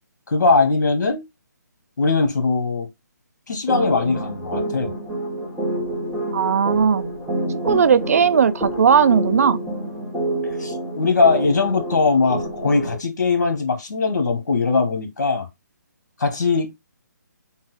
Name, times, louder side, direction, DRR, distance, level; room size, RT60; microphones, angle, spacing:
voice 1, 0.3-1.2 2.0-2.9 3.5-4.9 10.6-15.5 16.2-16.7, left 4 dB, 60° left, 1.4 m, -20 dB
sound 1, 3.7-13.0, right 1 dB, 10° right, 0.9 m, -28 dB
voice 2, 6.3-7.0 7.6-9.6, right 7 dB, 50° right, 0.4 m, -17 dB
3.8 x 2.4 x 4.0 m
hypercardioid pair, 155°, 10 cm